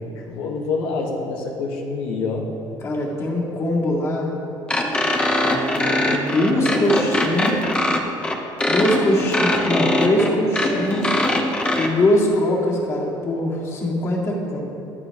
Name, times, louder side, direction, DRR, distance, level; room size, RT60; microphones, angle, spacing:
voice 1, 0.0-2.5, left 4 dB, 90° left, 0 dB, 1.4 m, -26 dB
voice 2, 2.8-4.3 5.3-7.7 8.7-11.2 11.8-14.6, left 1 dB, 30° left, -3 dB, 2.0 m, -22 dB
sound 1, 4.7-11.9, left 1 dB, 10° left, 0.8 m, -21 dB
23.5 x 8.8 x 3.0 m, 3.0 s
cardioid pair, 165°, 9 cm